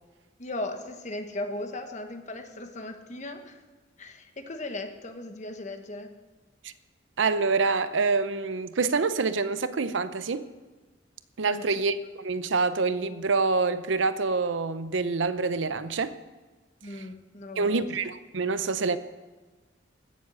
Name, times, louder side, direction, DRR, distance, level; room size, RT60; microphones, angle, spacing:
voice 1, 0.4-3.6 4.0-6.1 11.5-11.6 16.8-17.9, left 2 dB, 40° left, 1.2 m, -37 dB
voice 2, 7.2-10.5 11.4-16.1 16.9-17.1 17.6-19.0, right 4 dB, 80° right, 0.7 m, -26 dB
16.5 x 7.3 x 6.3 m
head